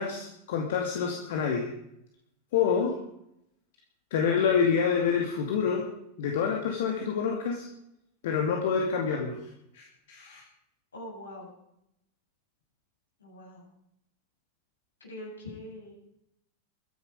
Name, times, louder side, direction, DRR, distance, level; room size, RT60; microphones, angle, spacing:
voice 1, 0.0-1.7 2.5-2.9 4.1-5.9 6.2-7.7 8.2-9.4 9.7-10.4, left 6 dB, 55° left, 2 dB, 2.5 m, -27 dB
voice 2, 10.9-11.5 13.2-13.6 15.0-16.0, left 1 dB, 75° left, -1 dB, 7.4 m, -43 dB
23.5 x 10.5 x 5.1 m, 0.78 s
figure-of-eight pair, 90°, 0 cm